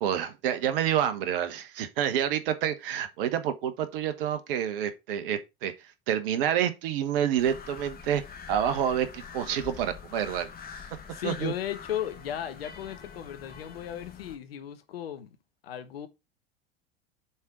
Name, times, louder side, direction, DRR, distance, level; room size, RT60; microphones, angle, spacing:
voice 1, 0.0-5.7 6.1-8.2 8.5-10.5 11.2-11.5, right 9 dB, 65° right, 1.3 m, -28 dB
sound 1, 7.4-14.4, left 6 dB, 30° left, 1.7 m, -45 dB
voice 2, 10.9-15.3 15.6-16.1, left 10 dB, 75° left, 1.1 m, -36 dB
7.1 x 3.9 x 4.8 m
hypercardioid pair, 80°, 30 cm